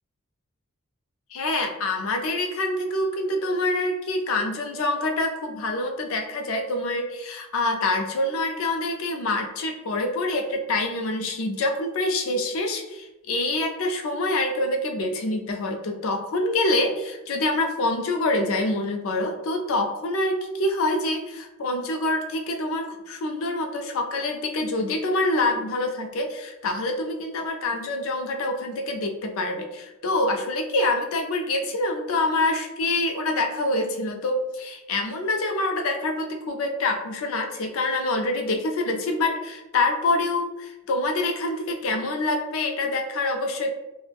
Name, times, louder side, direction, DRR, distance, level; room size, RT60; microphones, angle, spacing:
voice 1, 1.3-43.7, left 2 dB, 65° left, 3 dB, 0.4 m, -26 dB
2.3 x 2.0 x 3.3 m, 0.97 s
head